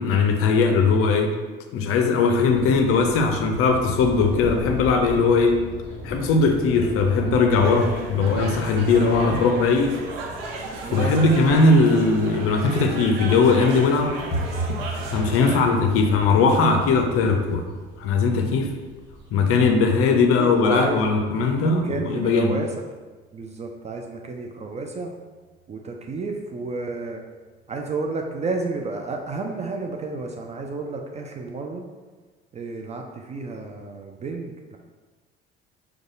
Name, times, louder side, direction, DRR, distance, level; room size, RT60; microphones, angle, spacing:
voice 1, 0.0-1.3 1.7-5.6 6.0-10.0 10.9-14.2 15.1-17.6 18.0-18.7 19.3-22.6, left 4 dB, 45° left, 4 dB, 0.6 m, -19 dB
sound 1, 2.5-21.6, left 1 dB, 40° right, 1.3 m, -40 dB
sound 2, 7.6-15.6, right 3 dB, 70° right, 0.6 m, -34 dB
voice 2, 10.8-11.6 15.4-15.6 20.3-21.1 21.6-22.9 23.3-25.1 25.7-27.2 27.7-31.8 32.5-34.8, right 3 dB, 20° right, 2 dB, 0.4 m, -31 dB
sound 3, 14.3-25.0 25.3-26.0 26.2-26.5 26.8-27.2 27.5-27.6 28.1-28.6 29.0-29.1 29.6-29.7, right 1 dB, 30° left, 0.9 m, -37 dB
6.2 x 2.3 x 2.5 m, 1.3 s
figure-of-eight pair, 55°, 31 cm